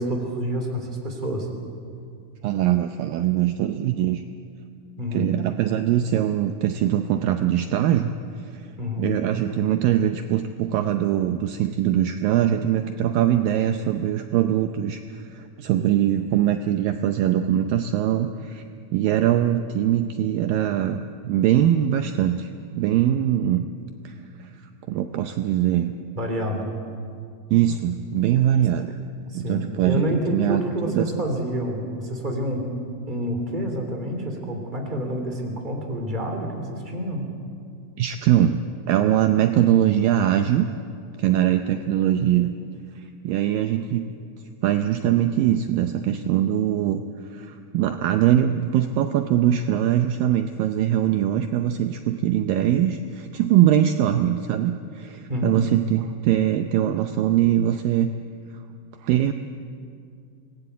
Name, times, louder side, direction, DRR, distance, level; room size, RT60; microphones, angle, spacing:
voice 1, 0.0-1.5 5.0-5.3 8.8-9.1 26.2-26.7 29.3-32.6 33.1-37.3 55.3-55.7, equal, 15° right, 3 dB, 2.8 m, -28 dB
voice 2, 2.4-4.2 5.1-8.1 8.4-8.7 9.0-18.6 18.9-23.7 24.0-24.2 24.4-24.5 24.9-25.9 27.5-28.9 29.3-31.0 38.0-40.7 41.2-42.6 43.0-44.1 44.6-47.0 47.3-58.1 59.0-59.3, right 11 dB, 75° right, 7 dB, 2.3 m, -22 dB
25.5 x 19.5 x 8.3 m, 2.3 s
omnidirectional pair, 4.5 m